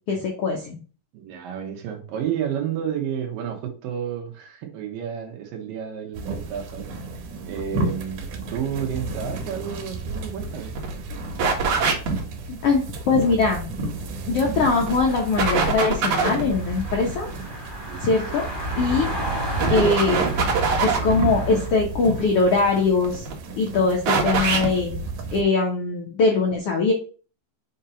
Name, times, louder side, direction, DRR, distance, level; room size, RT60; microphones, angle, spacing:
voice 1, 0.1-0.8 12.5-13.6 14.3-17.3 18.0-18.5 18.8-19.1 19.7-20.3 20.8-23.2 23.6-24.9 25.3-26.9, left 4 dB, 80° left, 0 dB, 1.3 m, -21 dB
voice 2, 1.1-6.9 7.4-8.2 8.5-10.7 17.9-18.1, right 8 dB, 75° right, 2 dB, 2.8 m, -31 dB
sound 1, 6.1-25.4, right 2 dB, 90° right, 3.2 m, -32 dB
sound 2, 10.5-10.6 10.8-10.9 11.4-12.2 14.4-14.9 15.4-16.5 18.6-19.0 19.6-21.2 22.9-23.3 24.1-24.7, right 5 dB, 60° right, 2.5 m, -22 dB
sound 3, 14.9-21.7, right 1 dB, 15° right, 0.9 m, -33 dB
6.5 x 2.8 x 5.5 m, 0.38 s
omnidirectional pair, 4.2 m